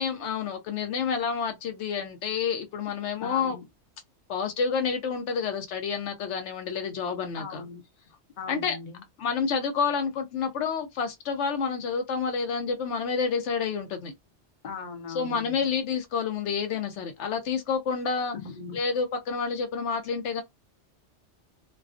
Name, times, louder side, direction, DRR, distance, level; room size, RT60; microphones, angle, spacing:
voice 1, 0.0-3.6 4.3-7.4 8.5-8.8 9.2-14.1 15.1-18.3 18.7-20.4, left 6 dB, 80° left, 0.9 m, -29 dB
voice 2, 3.2-3.6 7.4-7.8 8.4-9.0 14.6-15.7 18.3-18.8, left 5 dB, 50° left, 0.7 m, -39 dB
2.3 x 2.2 x 2.4 m
omnidirectional pair, 1.2 m